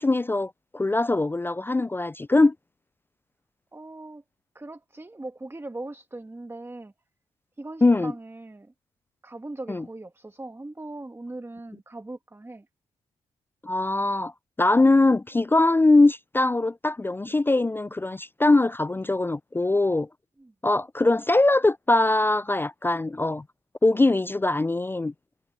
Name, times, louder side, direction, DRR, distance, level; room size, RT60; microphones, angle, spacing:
voice 1, 0.0-2.5 7.8-8.1 9.7-9.8 13.6-14.3 14.6-20.1 20.6-23.4 23.8-25.1, left 2 dB, 15° left, 0.3 m, -22 dB
voice 2, 3.7-4.2 4.5-6.9 7.6-8.7 9.2-12.7 20.4-20.5, right 2 dB, 15° right, 1.6 m, -40 dB
supercardioid pair, 60°, 15 cm